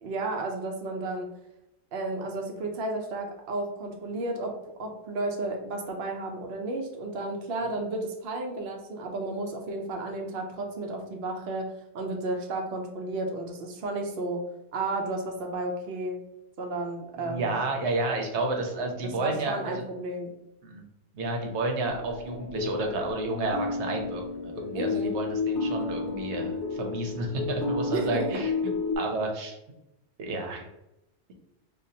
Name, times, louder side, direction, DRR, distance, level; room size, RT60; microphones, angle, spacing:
voice 1, 0.0-1.3 1.9-4.5 4.8-11.7 11.9-14.4 14.7-16.2 16.6-17.5 19.0-20.3 24.7-25.1 27.9-28.4, right 2 dB, 65° right, 1 dB, 0.8 m, -32 dB
voice 2, 17.2-19.8 20.6-20.8 21.1-28.5 29.0-29.6 30.2-30.7, right 2 dB, 90° right, 2 dB, 1.0 m, -31 dB
sound 1, 21.8-28.9, left 4 dB, 85° left, 0.9 m, -32 dB
5.1 x 2.1 x 2.7 m, 0.87 s
omnidirectional pair, 1.1 m